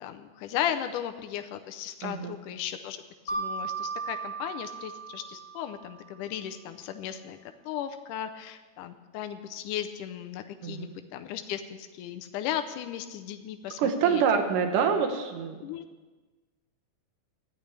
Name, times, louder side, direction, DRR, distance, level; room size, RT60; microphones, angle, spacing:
voice 1, 0.0-3.0 3.3-7.4 7.7-14.2 15.6-15.8, left 10 dB, 85° left, 7 dB, 2.2 m, -36 dB
voice 2, 2.0-2.4 10.6-10.9 13.8-15.6, right 6 dB, 90° right, 6 dB, 2.7 m, -26 dB
Mallet percussion, 3.3-6.0, right 4 dB, 40° left, 1.2 m, -36 dB
19.5 x 13.0 x 3.3 m, 1.3 s
omnidirectional pair, 3.6 m